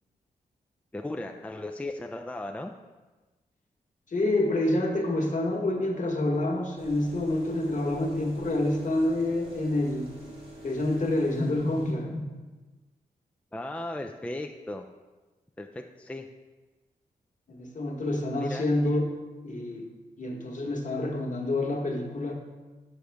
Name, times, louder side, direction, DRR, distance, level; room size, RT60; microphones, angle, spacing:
voice 1, 0.9-2.7 13.5-14.9 15.6-16.3 18.4-18.7, left 1 dB, 10° left, 4 dB, 0.4 m, -36 dB
voice 2, 4.1-10.1 10.6-12.2 17.5-19.1 19.4-19.9 20.2-22.4, left 1 dB, 45° left, 1 dB, 1.2 m, -27 dB
sound 1, 6.7-11.9, right 2 dB, 70° right, 1.8 m, -47 dB
6.5 x 4.9 x 3.4 m, 1.2 s
supercardioid pair, 45°, 17 cm